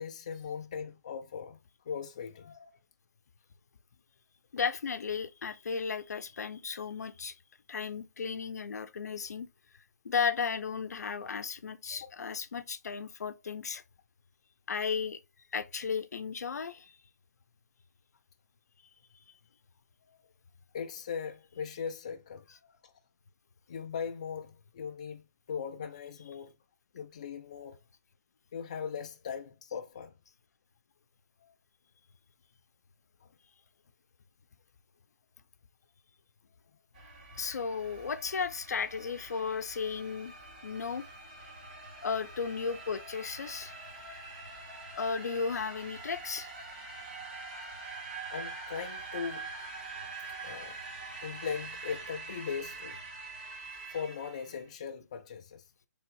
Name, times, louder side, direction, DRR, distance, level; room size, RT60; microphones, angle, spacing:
voice 1, 0.0-1.6 1.9-2.7 12.0-12.1 20.1-20.2 20.7-22.4 22.8-22.9 23.7-26.5 26.9-27.8 28.5-30.1 31.4-31.5 37.7-37.8 48.3-49.5 50.4-50.8 51.2-53.0 53.9-55.6, left 6 dB, 25° left, 0.4 m, -39 dB
voice 2, 4.5-7.4 7.7-9.5 10.0-13.8 14.7-15.2 15.5-17.0 37.4-40.3 40.6-41.1 42.0-43.8 45.0-46.5, left 5 dB, 75° left, 0.6 m, -34 dB
sound 1, 36.9-54.6, right 3 dB, 30° right, 1.5 m, -45 dB
3.5 x 3.0 x 4.6 m
hypercardioid pair, 180°, 9 cm